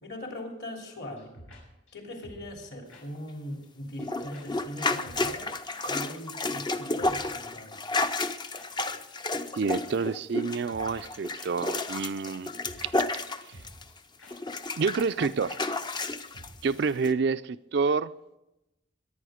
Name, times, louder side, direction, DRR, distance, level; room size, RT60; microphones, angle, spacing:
voice 1, 0.0-1.3 1.9-5.5 5.8-7.8, left 1 dB, 55° left, 3.2 m, -40 dB
sound 1, 1.2-1.6 1.9-2.0 2.2-2.6 2.9-3.0 3.3-3.4 3.6-3.7 4.0-4.1 4.3-4.4 4.7-4.8 5.0-5.5 5.7-5.8 6.1-6.2 6.5-6.6 6.8-7.2 7.5-7.6 8.5-8.7 8.9-9.0 9.3-9.4 9.6-9.7 10.0-10.1 10.3-10.4 10.7-11.1 11.4-11.5 11.8-11.9 12.1-12.2 12.5-12.9 13.2-13.3 13.5-13.9 14.2-14.3 14.6-14.7 14.9-15.0 15.3-15.4 15.6-15.7 16.0-16.1 16.3-16.8 17.0-17.1, equal, 90° left, 5.8 m, -50 dB
sound 2, 4.0-14.0 14.3-16.5 17.0-17.1, left 2 dB, 20° left, 0.5 m, -32 dB
voice 2, 9.5-12.5 12.8-12.9 13.5-13.6 14.8-15.6 16.6-18.1, right 5 dB, 55° right, 0.4 m, -28 dB
22.0 x 9.3 x 5.0 m
head